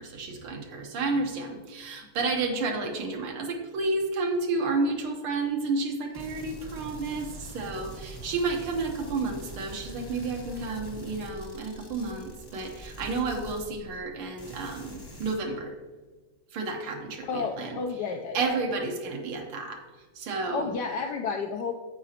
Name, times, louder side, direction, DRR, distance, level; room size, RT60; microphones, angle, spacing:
voice 1, 0.0-15.7 16.5-17.8 18.3-19.8 20.2-20.7, right 3 dB, 85° right, 2 dB, 2.0 m, -31 dB
sound 1, 6.1-14.1 14.4-15.3, equal, 20° left, 0.6 m, -44 dB
voice 2, 17.2-18.5 20.5-21.7, left 5 dB, 75° left, 2 dB, 1.0 m, -31 dB
14.0 x 5.0 x 2.8 m, 1.3 s
omnidirectional pair, 2.3 m